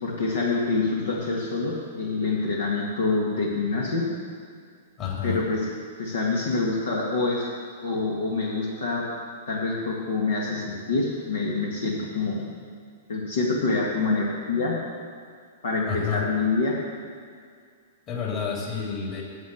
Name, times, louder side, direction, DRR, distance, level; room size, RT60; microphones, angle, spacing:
voice 1, 0.0-4.0 5.2-5.7 6.0-7.5 7.8-9.0 9.5-12.5 13.1-14.8 15.6-16.8, left 3 dB, 70° left, -3 dB, 1.9 m, -26 dB
voice 2, 5.0-5.4 15.9-16.3 18.1-19.2, left 7 dB, 35° left, -2 dB, 3.4 m, -29 dB
9.4 x 8.5 x 7.8 m, 2.2 s
figure-of-eight pair, 110°, 0 cm